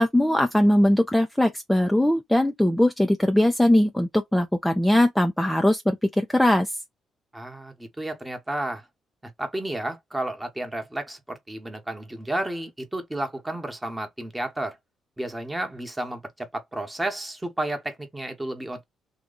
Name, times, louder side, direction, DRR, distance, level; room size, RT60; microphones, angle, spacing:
voice 1, 0.0-6.7, left 1 dB, 5° left, 0.5 m, -20 dB
voice 2, 7.3-8.9 9.2-14.8 15.2-18.8, right 1 dB, 10° right, 1.2 m, -32 dB
3.0 x 2.3 x 3.8 m
cardioid pair, 90°, 0 cm